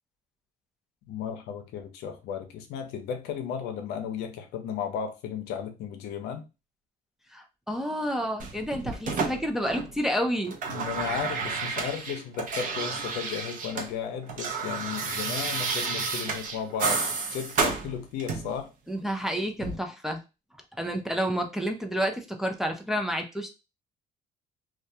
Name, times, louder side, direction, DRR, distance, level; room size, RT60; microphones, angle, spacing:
voice 1, 1.1-6.5 10.7-17.0 17.3-18.7, left 8 dB, 85° left, 0.5 m, -34 dB
voice 2, 7.3-10.5 18.9-20.2 20.8-23.5, equal, ahead, 0.4 m, -29 dB
sound 1, 8.4-10.1 10.4-13.9 14.2-18.6 19.6-19.8, right 4 dB, 50° right, 0.7 m, -31 dB
2.3 x 2.2 x 2.7 m
cardioid pair, 110°, 17 cm